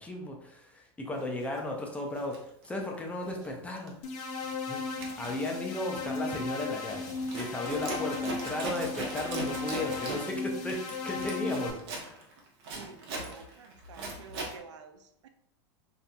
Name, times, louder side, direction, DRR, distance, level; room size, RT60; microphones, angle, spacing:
voice 1, 0.0-2.4 2.6-3.9 4.7-4.8 5.2-7.1 7.3-12.3, left 2 dB, 10° left, 0 dB, 0.4 m, -35 dB
Zipper (clothing), 1.4-1.6 2.1-3.5 3.8-4.1 4.4-14.6, right 3 dB, 60° right, 0.8 m, -40 dB
sound 1, 4.0-11.7, left 4 dB, 45° left, 0.6 m, -36 dB
voice 2, 12.5-15.3, right 6 dB, 90° right, 7 dB, 0.4 m, -51 dB
2.7 x 2.5 x 2.2 m, 0.73 s
supercardioid pair, 125°, 15 cm